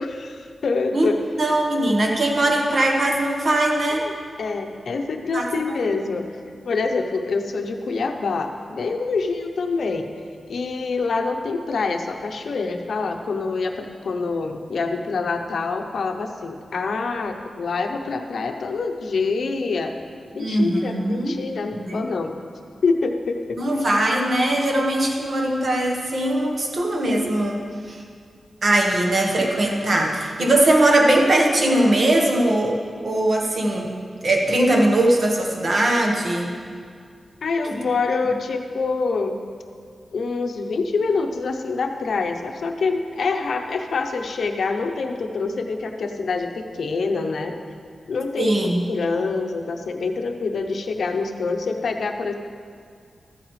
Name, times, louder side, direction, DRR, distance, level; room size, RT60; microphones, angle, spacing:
voice 1, 0.0-1.2 3.9-4.1 4.4-6.2 6.6-10.1 10.5-19.9 20.3-22.4 22.8-23.6 37.4-39.4 40.1-47.5 48.1-52.3, left 4 dB, 75° left, 5 dB, 0.7 m, -26 dB
voice 2, 1.4-4.1 5.3-5.8 20.3-21.4 21.7-22.0 23.6-28.0 28.6-33.9 34.2-36.5 48.4-48.8, right 1 dB, 45° right, 0 dB, 1.2 m, -20 dB
13.5 x 8.8 x 3.2 m, 2.1 s
wide cardioid pair, 140°, 0 cm